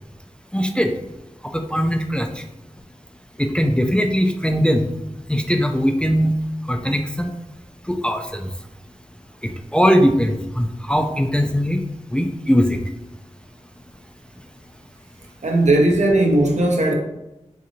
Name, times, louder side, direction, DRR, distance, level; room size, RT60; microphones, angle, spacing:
voice 1, 0.5-0.9 1.4-2.4 3.4-4.9 5.3-6.3 6.7-7.3 7.9-8.5 9.4-11.8 12.1-12.8, equal, 10° left, 0.4 m, -20 dB
voice 2, 15.4-16.9, right 1 dB, 65° right, 0.6 m, -17 dB
3.9 x 2.6 x 2.9 m
cardioid pair, 45°, 13 cm